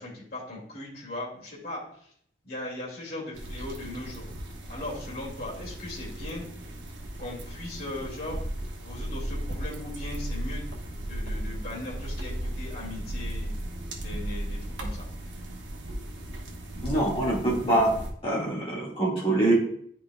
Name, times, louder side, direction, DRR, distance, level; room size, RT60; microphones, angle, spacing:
voice 1, 0.0-2.1 2.4-4.3 4.7-6.4 7.2-8.4 8.8-10.6 11.0-13.5 14.0-15.1, left 1 dB, 55° left, -5 dB, 2.4 m, -38 dB
sound 1, 3.3-18.1, right 1 dB, 85° right, 1.0 m, -40 dB
sound 2, 8.3-14.7, right 1 dB, 40° right, 0.9 m, -34 dB
voice 2, 16.8-17.9 18.2-19.5, right 1 dB, 30° left, -5 dB, 1.9 m, -24 dB
10.5 x 4.6 x 2.3 m, 0.64 s
head